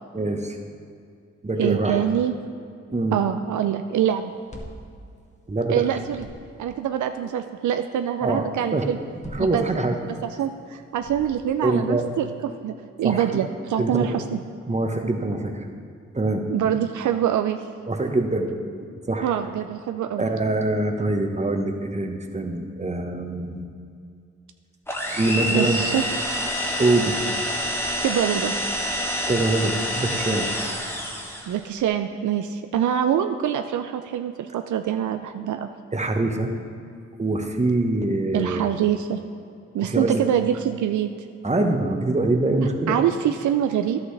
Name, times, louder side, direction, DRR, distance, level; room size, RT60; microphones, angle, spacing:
voice 1, 0.1-0.6 1.4-2.0 2.9-3.2 5.5-5.9 8.2-8.5 8.7-8.8 9.2-10.0 11.6-12.1 13.0-13.4 13.8-14.2 14.7-15.7 16.1-16.5 17.9-18.5 18.8-19.3 20.2-23.7 25.2-25.8 26.8-27.2 29.3-30.5 35.9-36.5 37.2-38.7 39.8-40.2 41.4-43.0, right 2 dB, 25° right, 4 dB, 1.1 m, -24 dB
voice 2, 1.6-2.3 3.1-4.3 5.7-6.3 6.6-9.0 9.4-9.6 10.2-14.4 16.5-17.6 19.2-20.3 25.1-25.2 25.5-26.0 28.0-28.5 31.5-35.7 38.3-39.2 39.7-41.1 42.9-44.0, right 10 dB, 75° right, 7 dB, 0.5 m, -24 dB
sound 1, 4.2-5.7 6.0-6.8 8.9-10.2 10.9-11.7, equal, 25° left, 1.4 m, -43 dB
sound 2, 24.9-31.6, equal, 10° left, 1.3 m, -27 dB
11.0 x 8.1 x 3.3 m, 2.3 s
cardioid pair, 50°, 30 cm